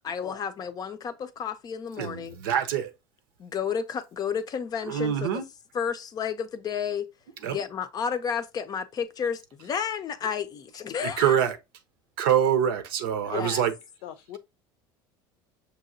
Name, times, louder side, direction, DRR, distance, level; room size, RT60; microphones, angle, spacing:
voice 1, 0.0-2.4 3.4-5.4 5.7-7.1 7.4-11.4 13.3-13.6, left 7 dB, 35° left, 0.5 m, -31 dB
voice 2, 2.0-2.9 4.8-5.5 7.4-7.6 11.0-11.6 12.2-13.7, right 9 dB, 90° right, 0.8 m, -25 dB
voice 3, 13.2-13.6 14.0-14.4, left 11 dB, 80° left, 0.6 m, -41 dB
6.1 x 2.8 x 2.6 m
supercardioid pair, 110°, 11 cm